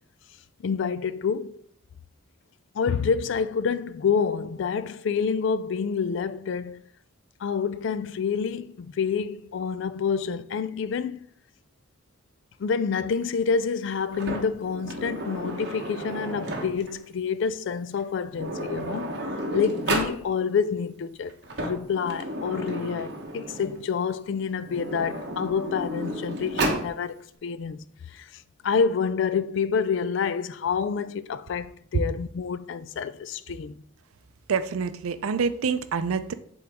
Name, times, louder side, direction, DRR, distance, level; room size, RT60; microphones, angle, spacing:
voice 1, 0.6-1.6 2.7-6.8 7.4-11.2 12.6-19.2 19.5-27.8 28.1-33.8, left 6 dB, 60° left, 0.3 m, -28 dB
Sliding door, 14.1-17.0 18.0-18.1 18.3-20.2 21.3-23.8 24.6-26.9, right 1 dB, 50° right, 1.0 m, -32 dB
voice 2, 34.5-36.3, right 5 dB, 85° right, 0.4 m, -26 dB
7.6 x 3.9 x 3.5 m
head